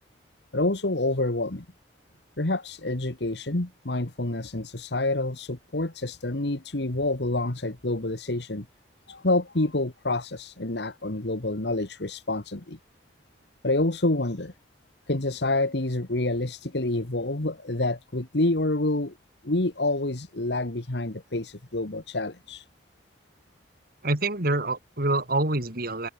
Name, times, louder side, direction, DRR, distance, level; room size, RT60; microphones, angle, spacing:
voice 1, 0.5-1.7 2.4-8.7 9.1-12.8 13.6-14.5 15.1-19.1 19.4-22.7, left 2 dB, 70° left, 1.8 m, -27 dB
voice 2, 24.0-26.1, right 2 dB, 60° right, 3.7 m, -26 dB
head